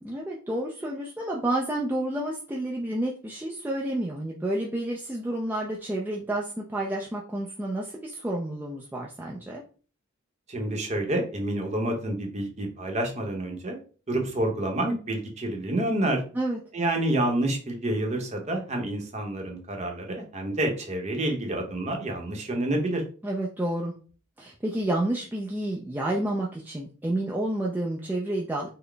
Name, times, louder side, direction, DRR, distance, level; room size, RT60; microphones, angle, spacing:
voice 1, 0.0-9.6 16.3-16.6 23.2-23.9 24.4-28.7, right 1 dB, 10° right, -3 dB, 0.3 m, -30 dB
voice 2, 10.5-13.8 14.1-16.2 16.7-23.0, right 1 dB, 30° right, 2 dB, 0.7 m, -28 dB
3.8 x 2.0 x 3.3 m, 0.39 s
head